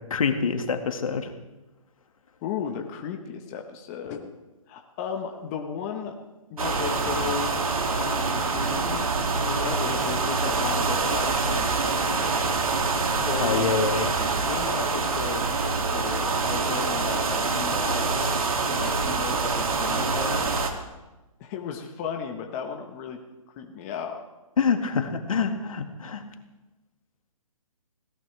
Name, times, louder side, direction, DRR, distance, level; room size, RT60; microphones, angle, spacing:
voice 1, 0.1-1.3 13.4-14.2 24.6-26.2, left 5 dB, 70° left, 5 dB, 2.0 m, -26 dB
voice 2, 2.4-4.3 4.7-6.1 6.5-7.6 7.8-9.2 9.4-12.3 13.2-13.9 14.4-15.5 15.9-18.4 18.7-20.5 21.4-23.2 23.5-24.2, left 7 dB, 25° left, 3 dB, 1.3 m, -35 dB
sound 1, 6.6-20.7, right 4 dB, 75° right, 2.5 m, -25 dB
20.5 x 17.5 x 3.4 m, 1.1 s
hypercardioid pair, 150°, 18 cm